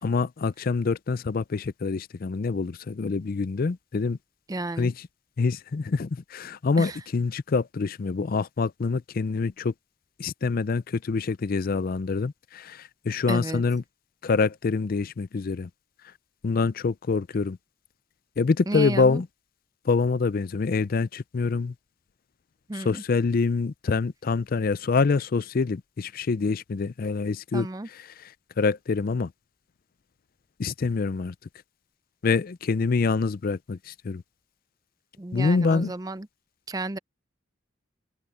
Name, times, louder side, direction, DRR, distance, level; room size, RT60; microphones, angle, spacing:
voice 1, 0.0-4.2 4.8-4.9 5.4-9.7 10.2-13.8 14.2-15.7 16.4-17.6 18.4-19.3 19.9-21.7 22.7-27.7 27.9-28.3 28.6-29.3 30.6-31.3 32.2-34.2 35.3-35.9, left 4 dB, 50° left, 0.4 m, -26 dB
voice 2, 4.5-4.9 6.8-7.0 13.3-13.6 18.7-19.2 22.7-23.0 27.5-27.9 35.2-36.3 36.7-37.0, right 2 dB, 20° right, 0.5 m, -32 dB
open air
head